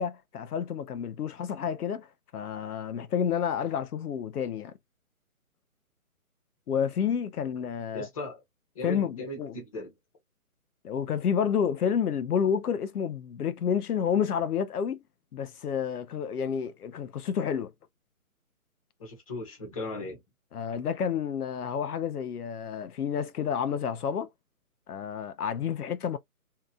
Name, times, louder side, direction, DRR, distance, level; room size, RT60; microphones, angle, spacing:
voice 1, 0.0-2.1 2.3-4.7 6.7-8.1 8.8-9.6 10.8-15.0 15.3-17.7 20.5-24.3 24.9-26.2, left 7 dB, 90° left, 0.6 m, -30 dB
voice 2, 7.9-8.4 8.7-9.9 19.0-20.2, left 2 dB, 25° left, 0.9 m, -37 dB
2.8 x 2.4 x 2.2 m
hypercardioid pair, 155°, 44 cm